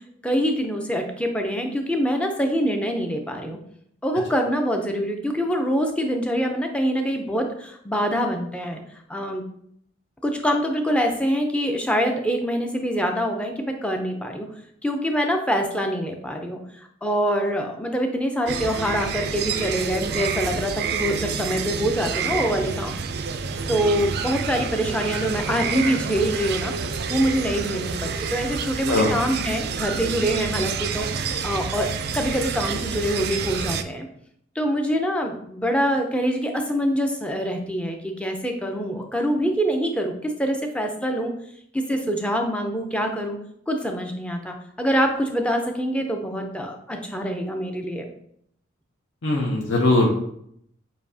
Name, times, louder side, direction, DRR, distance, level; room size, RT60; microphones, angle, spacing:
voice 1, 0.2-3.6 4.0-8.8 9.1-9.4 10.2-14.5 14.8-23.0 23.7-26.7 27.1-31.9 32.1-34.1 34.6-41.3 41.7-43.4 43.7-48.1, equal, 5° left, 3 dB, 0.5 m, -25 dB
sound 1, 18.5-33.8, right 5 dB, 55° right, 0.3 m, -28 dB
voice 2, 49.2-50.1, left 2 dB, 65° left, -2 dB, 0.7 m, -20 dB
6.8 x 2.7 x 2.7 m, 0.70 s
head